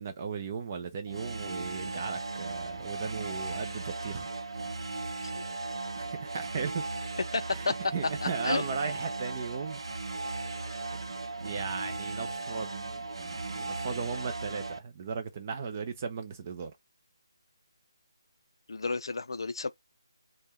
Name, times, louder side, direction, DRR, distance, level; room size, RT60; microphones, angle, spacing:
voice 1, 0.0-4.3 6.0-6.8 7.5-9.8 10.4-16.7, right 5 dB, 20° right, 0.4 m, -37 dB
sound 1, 1.1-14.8, right 3 dB, 75° right, 0.6 m, -37 dB
voice 2, 7.3-7.7 8.2-8.6 18.7-19.7, left 3 dB, 65° left, 0.4 m, -31 dB
3.5 x 2.1 x 2.9 m
figure-of-eight pair, 170°, 3 cm